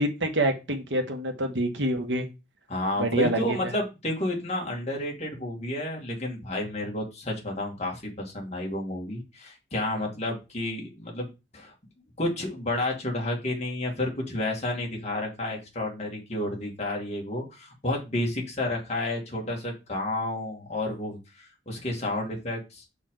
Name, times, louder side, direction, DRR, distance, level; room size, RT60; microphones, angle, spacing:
voice 1, 0.0-2.3 3.0-3.6, right 1 dB, 80° right, 5 dB, 1.5 m, -26 dB
voice 2, 2.7-11.7 12.2-23.0, left 1 dB, 35° left, -1 dB, 2.4 m, -31 dB
6.1 x 6.0 x 3.9 m, 0.27 s
head